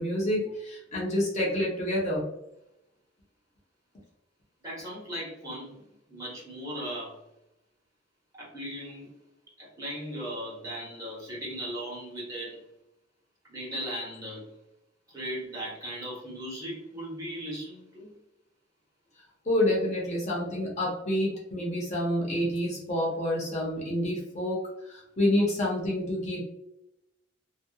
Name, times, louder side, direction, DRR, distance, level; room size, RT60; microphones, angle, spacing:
voice 1, 0.0-2.3 19.5-24.6 24.9-26.4, left 1 dB, 40° left, -4 dB, 0.7 m, -28 dB
voice 2, 4.6-7.2 8.3-9.1 9.6-12.6 13.5-14.4 15.1-18.1, equal, 20° right, -6 dB, 1.0 m, -37 dB
2.7 x 2.1 x 2.2 m, 0.86 s
head